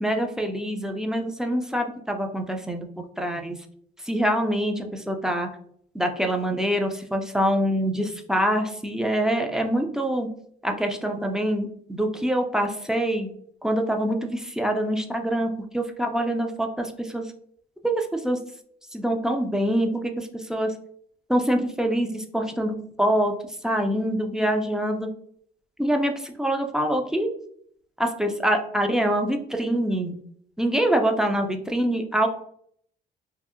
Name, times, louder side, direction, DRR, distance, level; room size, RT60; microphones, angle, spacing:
voice 1, 0.0-2.9 3.2-3.6 4.1-5.5 5.9-10.3 10.6-13.3 13.6-17.3 17.8-18.4 18.9-20.7 21.3-23.3 23.6-25.1 25.8-27.3 28.0-30.1 30.6-32.3, right 1 dB, 5° right, 3 dB, 0.3 m, -25 dB
2.6 x 2.4 x 2.4 m, 0.65 s
cardioid pair, 110°, 17 cm